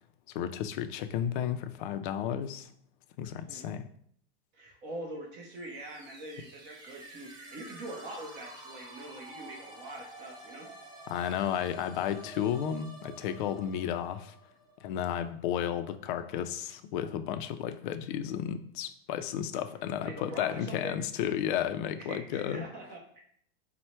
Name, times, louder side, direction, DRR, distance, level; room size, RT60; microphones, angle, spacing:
voice 1, 0.3-2.7 3.2-3.9 11.1-14.3 14.8-22.6, left 9 dB, 55° left, 10 dB, 0.4 m, -33 dB
voice 2, 4.5-10.7 20.0-21.0 22.0-23.2, right 1 dB, 35° right, 1 dB, 0.8 m, -43 dB
sound 1, 5.6-15.3, right 2 dB, 15° right, 0.4 m, -50 dB
4.4 x 2.1 x 4.3 m, 0.64 s
supercardioid pair, 150°, 31 cm